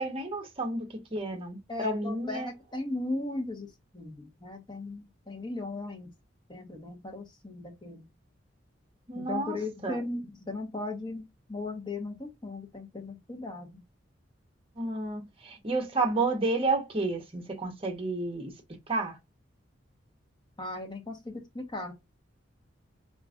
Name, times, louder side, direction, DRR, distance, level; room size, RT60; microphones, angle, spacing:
voice 1, 0.0-2.5 9.1-9.6 9.8-9.9 14.8-18.5 18.9-19.2, right 3 dB, 30° right, 0.9 m, -31 dB
voice 2, 1.7-6.1 6.5-8.0 9.1-13.8 20.6-21.9, left 2 dB, 25° left, 1.0 m, -37 dB
4.6 x 2.5 x 2.4 m
head